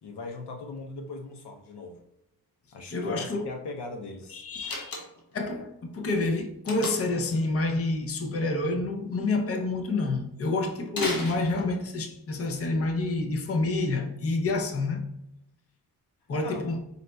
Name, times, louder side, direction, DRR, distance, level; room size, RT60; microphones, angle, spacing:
voice 1, 0.0-2.0 2.7-4.4 16.4-16.7, left 3 dB, 80° left, 0.8 m, -39 dB
voice 2, 2.9-3.5 4.3-4.9 5.3-15.0 16.3-16.8, left 2 dB, 35° left, 0.6 m, -28 dB
Slam, 4.6-5.4 6.7-7.2 10.9-12.0, left 2 dB, 60° left, 1.0 m, -34 dB
4.1 x 4.0 x 2.2 m
wide cardioid pair, 115°, 40 cm